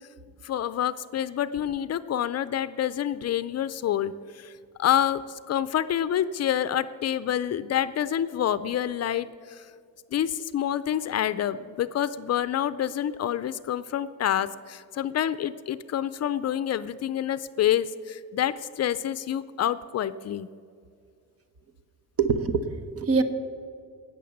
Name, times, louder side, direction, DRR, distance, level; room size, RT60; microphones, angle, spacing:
voice 1, 0.4-4.5 4.8-9.7 10.1-20.5, left 10 dB, 50° left, 15 dB, 0.5 m, -27 dB
voice 2, 22.2-23.2, right 5 dB, 45° right, 10 dB, 1.0 m, -24 dB
18.0 x 6.8 x 7.1 m, 2.3 s
cardioid pair, 135°, 33 cm